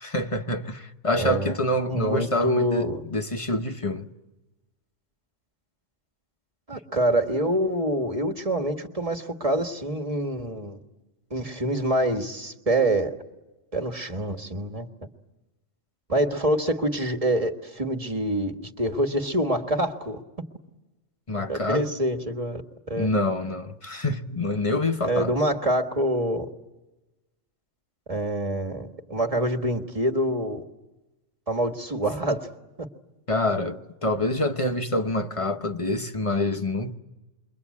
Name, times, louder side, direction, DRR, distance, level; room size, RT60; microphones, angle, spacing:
voice 1, 0.0-4.1 21.3-21.9 23.0-25.3 33.3-36.9, left 1 dB, 30° left, 1.0 m, -26 dB
voice 2, 1.2-1.6 1.9-3.0 6.7-10.8 11.3-13.1 13.7-14.9 16.1-20.2 21.5-22.6 22.9-23.1 25.0-26.5 28.1-30.6 31.5-32.5 32.8-32.9, right 1 dB, 30° right, 1.7 m, -26 dB
28.5 x 23.0 x 8.5 m
omnidirectional pair, 1.3 m